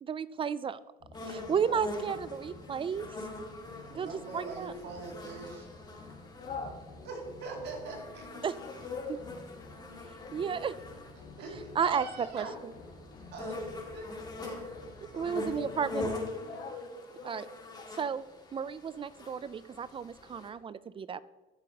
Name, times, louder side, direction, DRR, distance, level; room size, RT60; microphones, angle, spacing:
voice 1, 0.0-0.8 1.2-3.1 3.9-4.7 8.4-8.5 9.1-9.2 10.3-10.7 11.8-12.1 12.3-12.5 15.1-16.1 17.3-17.5 18.0-18.2 18.5-21.2, right 7 dB, 30° right, 17 dB, 0.4 m, -33 dB
sound 1, 1.0-16.7, left 3 dB, 80° left, 2.9 m, -52 dB
sound 2, 1.1-20.5, left 2 dB, 25° left, 2.1 m, -44 dB
voice 2, 3.9-5.7 7.1-8.3 11.4-12.5 13.2-14.7, right 3 dB, 85° right, 0 dB, 2.6 m, -42 dB
voice 3, 6.4-6.8 8.6-9.2 10.2-10.6 14.6-14.7 15.2-16.0 16.4-17.9, left 4 dB, 60° left, -1 dB, 1.4 m, -43 dB
14.0 x 7.1 x 2.9 m, 1.3 s
cardioid pair, 110°, 17 cm